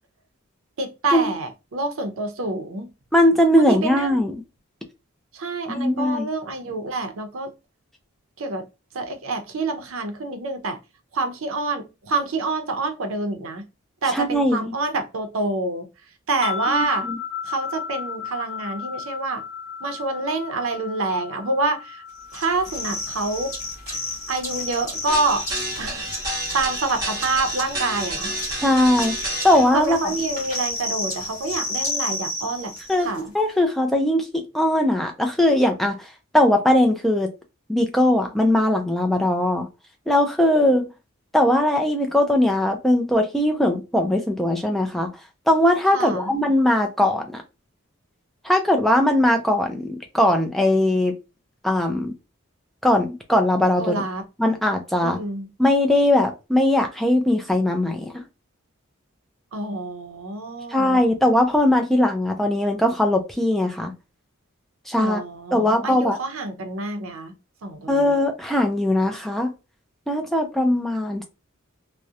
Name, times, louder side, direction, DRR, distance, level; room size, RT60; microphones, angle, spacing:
voice 1, 0.8-2.9 3.5-4.2 5.3-7.5 8.4-8.7 8.9-10.8 11.1-13.7 14.0-17.1 17.4-19.4 19.8-22.0 22.3-23.5 24.3-25.4 25.8-28.4 29.3-29.5 29.7-32.7 33.0-33.3 45.9-46.3 53.8-54.3 55.0-55.5 59.5-61.0 65.0-67.3 67.6-68.2, right 3 dB, 75° right, 0.6 m, -27 dB
voice 2, 3.1-4.3 5.7-6.3 14.1-14.6 16.7-17.1 28.6-29.1 29.4-30.0 32.9-33.1 33.3-36.1 36.3-37.3 37.7-39.7 40.1-40.9 41.3-45.1 45.5-47.4 48.4-51.2 51.6-52.1 52.8-54.0 54.4-55.2 55.6-58.2 60.7-63.9 64.9-65.2 65.5-66.2 67.9-69.5 70.1-71.2, left 1 dB, ahead, 0.3 m, -20 dB
sound 1, 16.4-25.7, left 7 dB, 70° left, 0.6 m, -35 dB
sound 2, 22.3-33.2, left 1 dB, 35° left, 1.0 m, -32 dB
sound 3, 25.1-29.7, right 2 dB, 15° right, 0.9 m, -31 dB
2.7 x 2.1 x 2.3 m
head